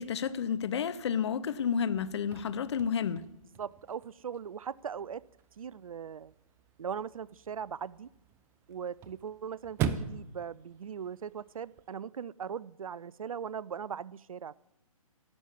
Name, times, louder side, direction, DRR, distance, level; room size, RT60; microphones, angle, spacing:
voice 1, 0.0-3.2, left 7 dB, 50° left, 15 dB, 0.7 m, -31 dB
Chirp tweet / Car / Slam, 2.0-11.9, right 8 dB, 15° right, 0.5 m, -42 dB
voice 2, 3.6-5.2 5.6-6.3 6.8-8.1 8.7-14.5, right 7 dB, 70° right, 22 dB, 0.4 m, -39 dB
11.5 x 6.4 x 8.5 m, 0.86 s
figure-of-eight pair, 125°, 18 cm